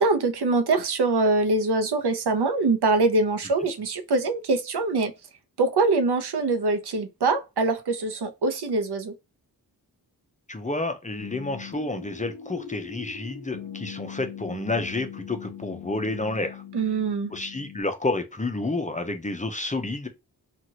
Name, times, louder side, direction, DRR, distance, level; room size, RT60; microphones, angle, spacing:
voice 1, 0.0-5.1 5.6-9.1 16.7-17.3, right 3 dB, 85° right, 0.7 m, -23 dB
voice 2, 10.5-16.6 17.3-20.1, left 2 dB, 20° left, 0.6 m, -30 dB
sound 1, 11.2-17.8, left 8 dB, 60° left, 0.7 m, -41 dB
2.8 x 2.4 x 2.8 m
wide cardioid pair, 70°, 38 cm